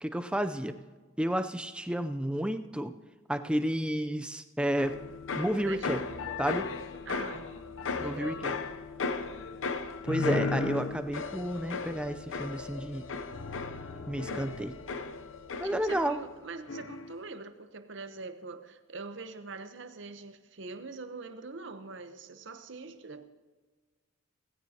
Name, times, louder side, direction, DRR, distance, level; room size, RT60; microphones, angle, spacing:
voice 1, 0.0-0.7 1.2-2.9 3.3-5.0 5.4-6.0 6.4-6.7 8.0-8.5 10.0-13.1 14.1-14.7 15.6-16.2, equal, 5° right, 9 dB, 0.5 m, -31 dB
sound 1, 4.7-16.0, equal, 20° left, 1.5 m, -59 dB
sound 2, 4.8-16.4 16.7-17.2, left 4 dB, 70° left, 0.7 m, -36 dB
voice 2, 5.6-5.9 7.1-7.5 7.9-8.5 15.6-23.2, right 3 dB, 60° right, 9 dB, 0.9 m, -43 dB
17.5 x 16.0 x 2.8 m, 1.4 s
head